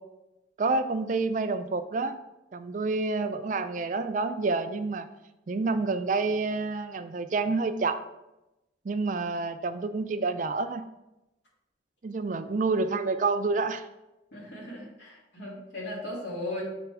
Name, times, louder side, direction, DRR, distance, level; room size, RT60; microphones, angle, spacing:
voice 1, 0.6-2.2 2.5-5.1 5.5-8.0 8.8-10.8 12.0-13.9, right 3 dB, 45° right, 9 dB, 0.4 m, -28 dB
voice 2, 14.3-16.6, left 1 dB, 80° left, -5 dB, 2.3 m, -37 dB
7.0 x 4.2 x 3.5 m, 0.95 s
head